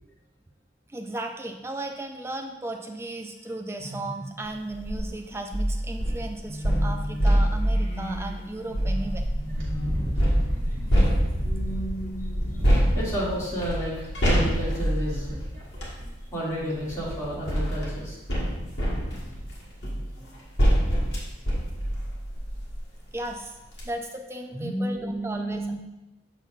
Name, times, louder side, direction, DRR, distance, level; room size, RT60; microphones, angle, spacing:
voice 1, 0.9-9.2 23.1-23.6 23.8-25.7, right 1 dB, 15° right, 4 dB, 0.3 m, -35 dB
sound 1, 3.8-4.9 6.4-12.9, equal, 45° left, 1.6 m, -38 dB
sound 2, 4.7-5.0 5.5-9.6 10.2-11.7 12.6-16.0 16.9-22.9 23.3-23.4 23.7-23.8, equal, 70° left, 1.5 m, -25 dB
Wind, 9.4-17.5, equal, 55° right, 2.2 m, -32 dB
voice 2, 12.9-15.4 16.3-18.2 24.5-25.7, right 1 dB, 20° left, -9 dB, 2.2 m, -31 dB
7.0 x 5.6 x 2.4 m, 0.97 s
head